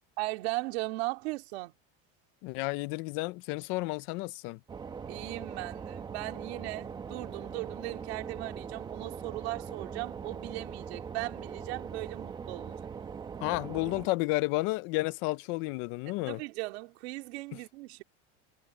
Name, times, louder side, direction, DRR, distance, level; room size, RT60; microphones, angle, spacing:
voice 1, 0.2-1.7 5.1-12.8 16.1-18.0, right 22 dB, 75° right, 2.9 m, -38 dB
voice 2, 2.4-4.6 13.4-16.4, left 22 dB, 40° left, 0.4 m, -31 dB
sound 1, 4.7-14.1, right 6 dB, 15° right, 0.9 m, -41 dB
cardioid pair, 175°, 33 cm